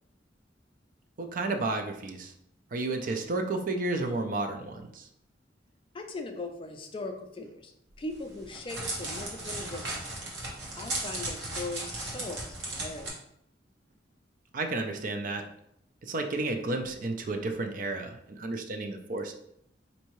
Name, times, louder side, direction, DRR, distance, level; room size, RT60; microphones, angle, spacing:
voice 1, 1.2-2.3 2.7-5.1 14.5-15.5 16.0-19.3, right 2 dB, 45° right, 5 dB, 0.4 m, -32 dB
voice 2, 5.9-7.7 8.0-10.1 10.8-13.1, left 2 dB, 30° left, 5 dB, 0.4 m, -39 dB
Crackle, 8.1-13.1, right 2 dB, 75° right, 1.1 m, -36 dB
4.3 x 2.7 x 3.0 m, 0.75 s
head